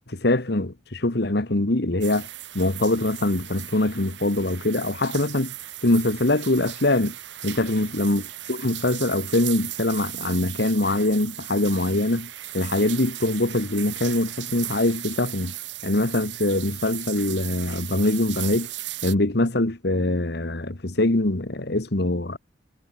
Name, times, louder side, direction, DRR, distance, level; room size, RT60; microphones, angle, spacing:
voice 1, 0.1-2.3 2.5-5.5 5.8-7.1 7.4-15.5 15.8-18.7 19.0-22.4, left 2 dB, 60° left, 1.6 m, -23 dB
sound 1, 2.0-19.2, right 15 dB, 65° right, 1.3 m, -37 dB
head